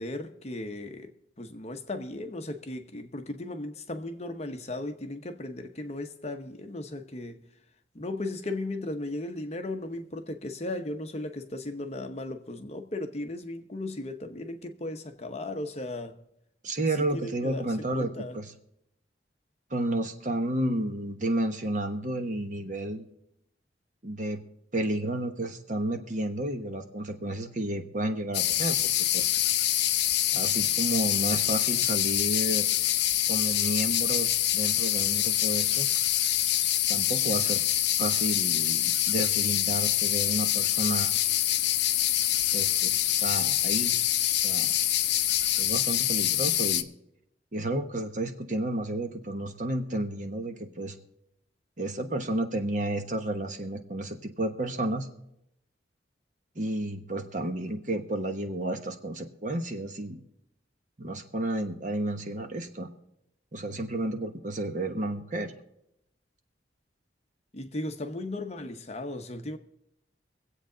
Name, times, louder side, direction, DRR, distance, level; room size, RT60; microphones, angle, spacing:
voice 1, 0.0-7.4 7.9-16.2 17.0-18.4 67.5-69.6, left 2 dB, 35° left, 0.9 m, -36 dB
voice 2, 16.6-18.5 19.7-23.0 24.0-24.4 24.7-29.3 30.3-32.7 33.3-35.9 36.9-37.6 38.0-41.1 42.5-44.0 44.4-44.7 45.5-46.9 47.5-51.0 51.8-55.1 56.5-60.2 61.0-62.9 63.5-65.5, right 1 dB, 45° right, 1.1 m, -31 dB
sound 1, 28.3-46.8, left 12 dB, 65° left, 0.6 m, -25 dB
23.5 x 8.2 x 3.9 m
head